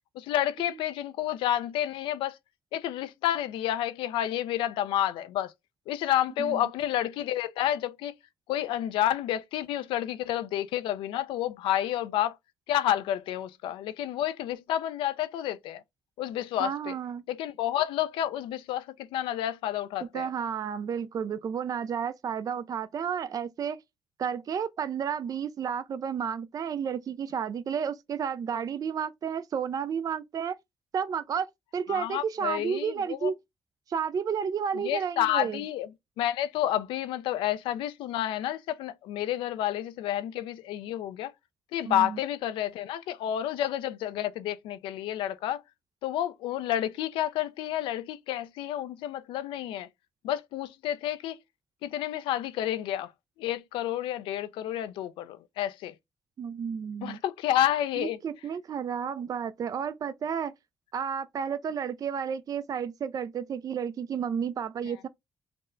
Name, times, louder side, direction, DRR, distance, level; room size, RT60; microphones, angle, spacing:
voice 1, 0.2-2.4 2.7-5.5 5.9-8.1 8.5-12.4 12.7-15.8 16.2-17.0 17.3-18.9 19.1-20.3 31.9-33.3 34.7-35.9 36.2-41.3 41.7-45.6 46.0-49.9 50.2-51.4 51.8-53.1 53.4-55.9 57.0-58.2, left 12 dB, 85° left, 0.4 m, -30 dB
voice 2, 16.6-17.2 20.1-23.8 24.2-30.6 30.9-31.5 31.7-33.4 33.9-35.6 41.8-42.2 56.4-57.2 58.0-60.5 60.9-65.1, right 7 dB, 45° right, 0.4 m, -32 dB
4.2 x 2.1 x 3.8 m
cardioid pair, 75°, 8 cm